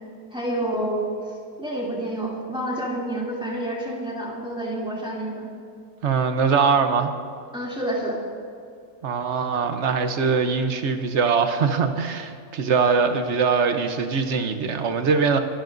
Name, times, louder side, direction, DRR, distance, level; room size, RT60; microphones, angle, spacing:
voice 1, 0.3-1.1 1.6-5.5 7.5-8.2, right 1 dB, 5° right, -5 dB, 2.7 m, -28 dB
voice 2, 6.0-7.1 9.0-15.4, right 5 dB, 55° right, 7 dB, 1.1 m, -22 dB
24.0 x 11.5 x 2.6 m, 2.5 s
omnidirectional pair, 1.5 m